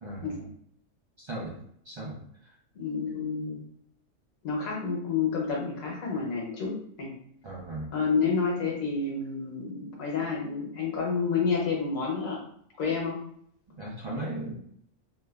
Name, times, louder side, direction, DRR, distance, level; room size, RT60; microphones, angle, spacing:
voice 1, 0.0-0.4 1.2-1.6 1.8-2.2 7.4-7.9 13.8-14.5, right 1 dB, 45° right, -5 dB, 0.4 m, -36 dB
voice 2, 2.7-3.6 4.4-7.1 7.9-12.4 12.8-13.2, left 5 dB, 90° left, -2 dB, 1.3 m, -29 dB
3.0 x 2.2 x 2.3 m, 0.67 s
omnidirectional pair, 1.3 m